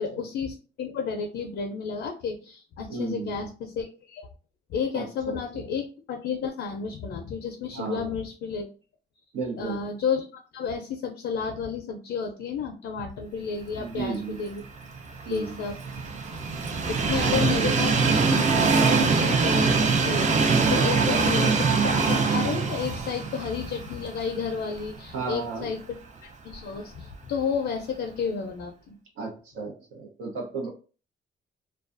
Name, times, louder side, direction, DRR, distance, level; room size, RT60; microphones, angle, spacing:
voice 1, 0.0-4.3 4.7-8.7 9.6-14.7 15.3-15.8 16.9-26.0 26.4-29.0, left 6 dB, 70° left, 4 dB, 0.4 m, -32 dB
voice 2, 2.9-3.5 4.9-5.7 7.7-8.1 9.3-9.8 13.8-14.4 15.2-15.6 17.3-17.8 20.8-21.5 25.1-25.7 29.2-30.7, right 4 dB, 85° right, -1 dB, 0.9 m, -34 dB
Train, 14.8-24.9 25.3-25.4 26.5-26.6, right 4 dB, 35° right, 0.5 m, -23 dB
2.3 x 2.3 x 2.5 m, 0.37 s
cardioid pair, 90°, 20 cm